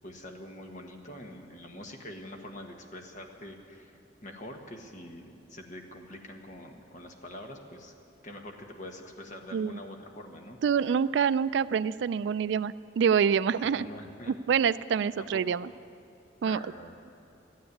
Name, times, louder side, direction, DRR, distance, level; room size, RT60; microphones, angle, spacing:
voice 1, 0.0-7.9 8.2-10.9 13.5-14.3 15.2-15.4 16.4-16.9, left 1 dB, 40° left, 3 dB, 1.4 m, -45 dB
voice 2, 10.6-13.8 14.5-15.7 16.4-16.6, right 7 dB, 70° right, 17 dB, 0.3 m, -26 dB
13.5 x 9.6 x 9.7 m, 2.6 s
head